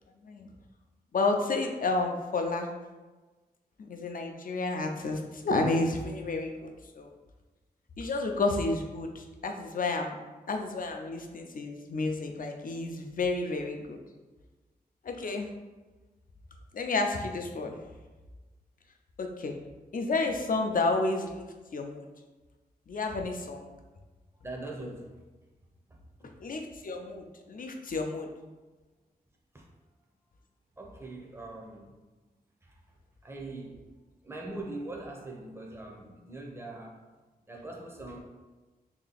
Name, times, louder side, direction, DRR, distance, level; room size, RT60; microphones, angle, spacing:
voice 1, 1.1-2.7 3.8-7.1 8.0-10.1 10.5-14.0 15.0-15.5 16.7-17.8 19.2-19.6 19.9-21.5 21.7-22.1 22.9-23.7 26.4-28.3, left 3 dB, 60° left, 4 dB, 0.5 m, -31 dB
voice 2, 24.3-25.2 25.9-26.3 29.5-29.7 30.8-31.9 32.6-32.8 33.2-33.8 34.2-37.0 37.5-38.2, right 2 dB, 15° right, 0 dB, 0.6 m, -42 dB
3.2 x 2.9 x 4.0 m, 1.2 s
wide cardioid pair, 90°, 16 cm